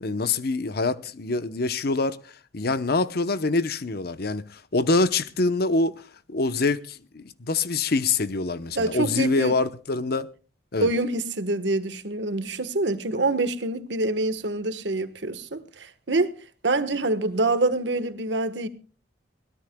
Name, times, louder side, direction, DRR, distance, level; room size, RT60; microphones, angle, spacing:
voice 1, 0.0-2.2 2.5-6.0 6.3-10.3 10.7-10.9, left 3 dB, 60° left, 0.9 m, -25 dB
voice 2, 8.7-9.5 10.8-16.3 16.6-18.7, right 2 dB, 80° right, 1.3 m, -26 dB
23.0 x 17.0 x 2.3 m
head